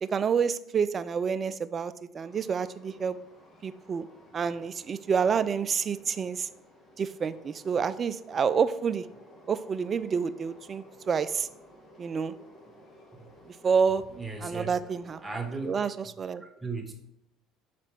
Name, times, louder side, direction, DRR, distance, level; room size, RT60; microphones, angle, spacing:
voice 1, 0.0-3.2 3.6-4.1 4.3-6.5 7.0-9.1 9.5-11.5 12.0-12.3 13.5-14.1 14.4-15.2 15.6-16.4, right 6 dB, 40° right, 14 dB, 0.4 m, -28 dB
Train, 2.2-15.7, equal, 40° left, 1.4 m, -54 dB
voice 2, 14.2-14.7 15.2-15.7 16.0-16.1 16.6-16.9, right 4 dB, 15° right, 3 dB, 1.3 m, -36 dB
6.4 x 4.2 x 4.7 m, 0.82 s
hypercardioid pair, 75°, 0 cm